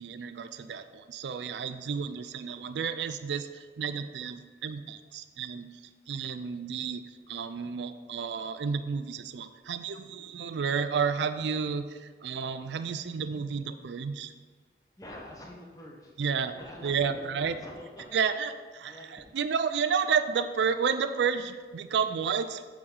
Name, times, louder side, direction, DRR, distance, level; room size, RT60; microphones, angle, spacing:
voice 1, 0.0-5.7 6.1-7.0 7.3-14.3 16.2-16.5 16.8-17.6 18.1-22.7, right 6 dB, 85° right, 11 dB, 0.4 m, -31 dB
voice 2, 15.0-16.1 16.5-18.2 18.8-19.3, left 1 dB, 20° left, -1 dB, 0.9 m, -46 dB
7.7 x 4.8 x 3.8 m, 1.5 s
head